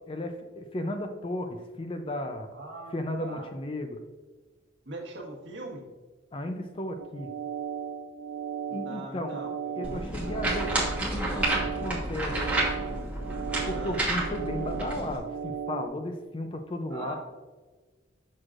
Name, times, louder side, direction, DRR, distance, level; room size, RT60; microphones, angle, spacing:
voice 1, 0.1-2.5 2.9-4.0 6.3-7.3 8.7-9.4 9.8-12.7 13.7-17.2, left 1 dB, 25° left, 6 dB, 0.4 m, -34 dB
voice 2, 2.5-3.4 4.8-5.8 8.7-10.0 13.7-14.0 16.9-17.2, right 2 dB, 65° right, -1 dB, 1.4 m, -41 dB
sound 1, 7.0-15.9, right 7 dB, 85° right, 0.4 m, -36 dB
sound 2, 9.8-15.2, right 2 dB, 5° right, 1.1 m, -30 dB
6.3 x 6.2 x 2.5 m, 1.3 s
head